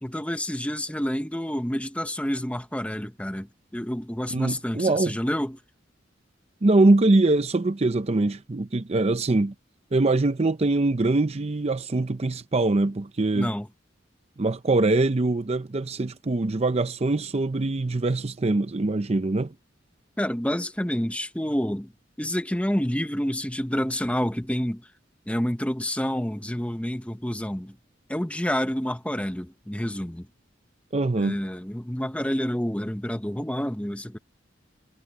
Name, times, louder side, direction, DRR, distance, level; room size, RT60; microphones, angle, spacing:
voice 1, 0.0-5.6 13.3-13.7 20.2-21.9 22.2-24.9 25.3-27.8 28.1-30.3 31.2-34.2, equal, 5° left, 1.1 m, -28 dB
voice 2, 4.3-5.1 6.6-9.5 9.9-13.5 14.4-19.5 30.9-31.4, right 2 dB, 35° right, 0.6 m, -23 dB
head